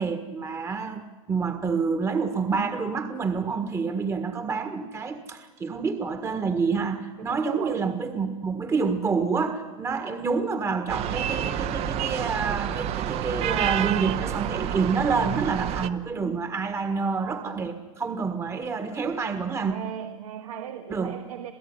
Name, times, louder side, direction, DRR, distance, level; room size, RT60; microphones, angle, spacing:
voice 1, 0.0-19.7 20.9-21.2, right 5 dB, 15° right, 8 dB, 1.6 m, -28 dB
voice 2, 7.2-8.0 10.0-10.3 16.8-17.8 19.6-21.5, right 9 dB, 80° right, 6 dB, 2.2 m, -38 dB
sound 1, 10.9-15.9, right 10 dB, 35° right, 1.1 m, -28 dB
27.5 x 16.5 x 9.7 m, 1.4 s
supercardioid pair, 140°, 18 cm